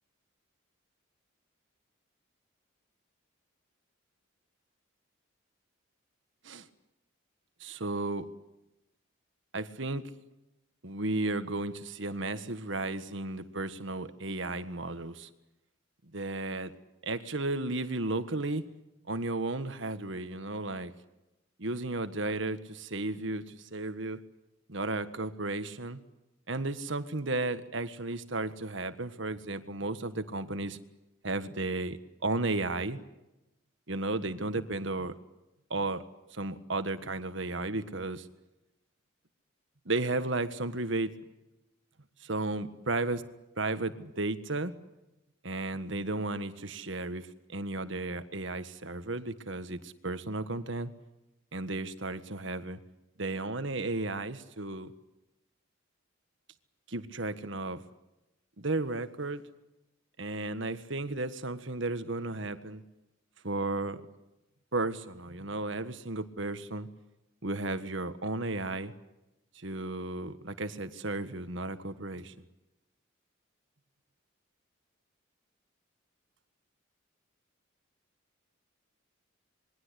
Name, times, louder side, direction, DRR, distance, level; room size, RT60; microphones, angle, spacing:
voice 1, 7.6-8.3 9.5-10.0 10.8-15.3 16.1-16.7 17.0-18.6 19.1-20.9 21.6-24.2 24.7-26.0 26.5-30.8 31.2-33.0 33.9-35.2 35.7-36.0 36.3-38.3 39.8-41.1 42.2-43.3 43.6-44.8 45.4-50.9 51.5-52.8 53.2-54.9 56.9-57.8 58.6-59.4 60.2-62.8 63.4-64.0 64.7-66.9 67.4-68.9 69.5-72.3, right 2 dB, 60° right, 11 dB, 1.6 m, -34 dB
27.0 x 22.0 x 8.3 m, 0.96 s
head